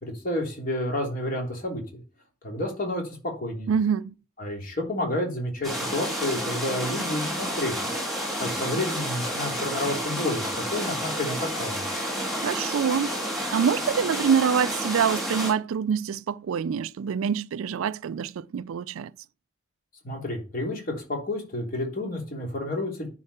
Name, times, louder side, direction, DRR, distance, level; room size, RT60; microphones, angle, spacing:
voice 1, 0.0-2.0 2.4-3.7 4.4-7.7 8.4-11.8 20.0-23.1, left 1 dB, 40° left, 3.2 m, -30 dB
voice 2, 3.7-4.1 12.4-13.1 13.5-19.1, right 7 dB, 75° right, 0.3 m, -25 dB
sound 1, 5.6-15.5, equal, ahead, 3.0 m, -30 dB
9.8 x 4.7 x 4.3 m
head